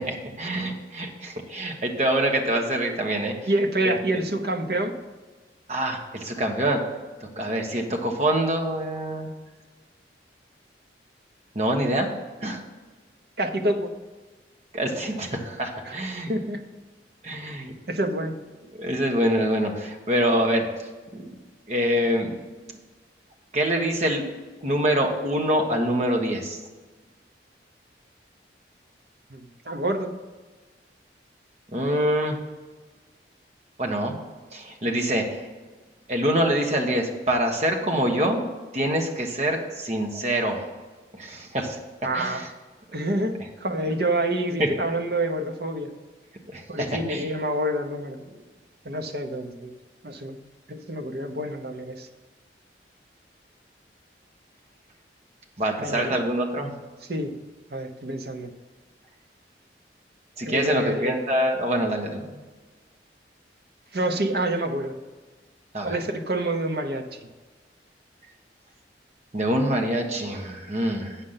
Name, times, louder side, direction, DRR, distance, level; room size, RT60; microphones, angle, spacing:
voice 1, 0.0-3.3 3.8-3.9 5.7-6.8 7.2-9.3 11.5-12.1 12.4-12.6 14.7-16.3 17.2-17.7 18.7-20.7 21.1-21.4 21.7-22.8 23.5-24.2 24.6-26.6 31.7-32.4 33.8-34.2 34.5-35.4 36.1-38.5 38.7-40.7 41.1-41.8 42.1-42.5 44.6-44.7 46.5-47.3 55.6-56.7 60.4-62.4 65.7-66.0 69.3-71.2, right 1 dB, 40° right, 2 dB, 1.3 m, -25 dB
voice 2, 3.4-4.9 13.4-13.9 15.8-15.9 16.3-16.6 17.9-18.4 29.3-30.1 42.0-42.5 42.9-45.9 46.7-48.2 48.8-49.7 50.0-50.4 50.7-52.1 55.8-56.1 57.1-57.3 57.7-58.5 60.4-61.2 63.9-65.0 65.8-67.1, right 1 dB, 60° right, 5 dB, 0.9 m, -27 dB
8.5 x 6.5 x 5.7 m, 1.3 s
head